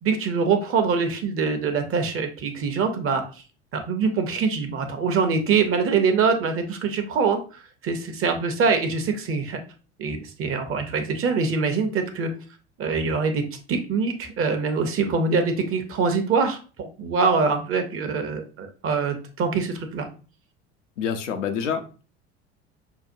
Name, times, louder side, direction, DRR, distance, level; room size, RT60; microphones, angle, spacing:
voice 1, 0.0-3.2 3.7-7.4 7.8-9.6 10.0-12.3 12.8-13.4 13.7-20.1, right 5 dB, 35° right, 7 dB, 0.8 m, -24 dB
voice 2, 21.0-22.0, left 7 dB, 80° left, 6 dB, 0.6 m, -27 dB
5.7 x 2.2 x 2.6 m, 0.36 s
hypercardioid pair, 70°, 36 cm